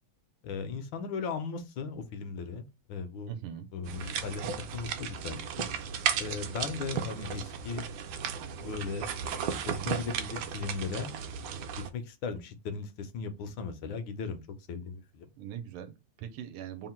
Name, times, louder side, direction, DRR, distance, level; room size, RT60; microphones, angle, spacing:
voice 1, 0.4-3.3 3.7-5.7 6.2-7.9 8.6-9.1 9.6-11.1 11.9-14.4 14.7-15.3, left 5 dB, 70° left, 1.3 m, -37 dB
voice 2, 3.3-3.7 15.4-16.9, right 9 dB, 90° right, 1.5 m, -41 dB
sound 1, 3.8-11.9, right 7 dB, 75° right, 1.2 m, -35 dB
3.7 x 2.1 x 4.2 m
omnidirectional pair, 2.3 m